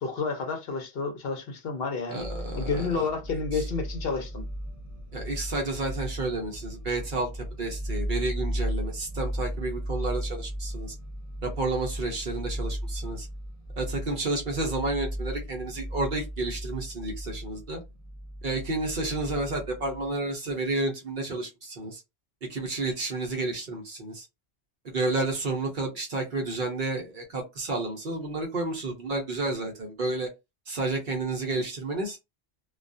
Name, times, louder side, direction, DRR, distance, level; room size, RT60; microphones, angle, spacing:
voice 1, 0.0-2.3 2.5-4.4, left 4 dB, 60° left, 0.9 m, -30 dB
voice 2, 2.1-3.1 3.5-3.7 5.1-10.9 11.4-13.3 13.8-17.8 18.4-22.0 22.5-24.3 24.8-30.3 30.7-32.2, right 2 dB, 55° right, 0.7 m, -31 dB
sound 1, 2.2-20.1, equal, 35° left, 1.0 m, -35 dB
2.3 x 2.2 x 2.6 m
omnidirectional pair, 1.2 m